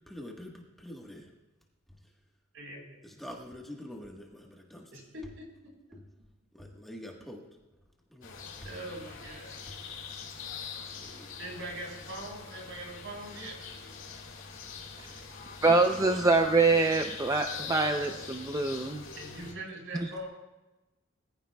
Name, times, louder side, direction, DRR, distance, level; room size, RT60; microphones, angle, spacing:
voice 1, 0.1-1.3 3.0-4.9 5.9-6.0 6.5-7.4 8.1-8.7 9.7-9.8 10.9-11.3 16.0-16.1, left 1 dB, ahead, -1 dB, 1.4 m, -46 dB
voice 2, 2.5-3.0 4.9-5.5 5.9-6.0 8.6-9.6 11.4-13.6 19.1-20.3, right 1 dB, 70° right, -1 dB, 5.3 m, -42 dB
sound 1, 8.2-19.5, left 5 dB, 70° left, 2.1 m, -44 dB
voice 3, 15.6-19.0 20.0-20.1, right 3 dB, 15° right, 5 dB, 0.5 m, -25 dB
22.0 x 14.5 x 2.3 m, 1.1 s
head